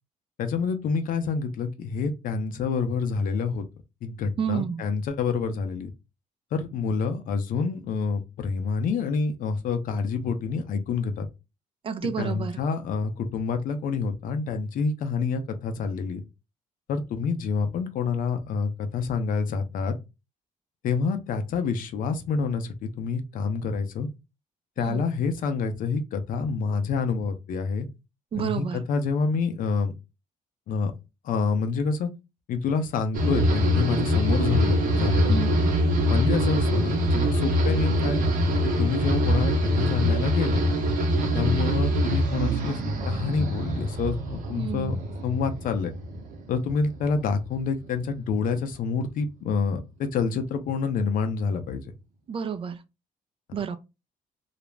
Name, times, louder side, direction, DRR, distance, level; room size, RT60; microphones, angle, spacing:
voice 1, 0.4-3.6 4.0-5.9 6.5-11.3 12.2-16.2 16.9-19.9 20.8-24.1 24.8-27.9 28.3-29.9 30.7-30.9 31.2-32.1 32.5-35.4 36.1-38.2 38.6-40.6 41.3-44.9 45.2-45.9 46.5-51.8 53.5-53.6, left 5 dB, 70° left, 0.6 m, -27 dB
voice 2, 4.4-4.9 11.8-12.6 24.8-25.1 28.3-28.8 35.3-35.8 44.5-45.0 52.3-52.8 53.5-53.8, right 7 dB, 40° right, 0.4 m, -30 dB
sound 1, 33.1-46.5 46.8-47.4, equal, 70° right, 0.7 m, -24 dB
2.4 x 2.0 x 3.2 m
cardioid pair, 110°, 15 cm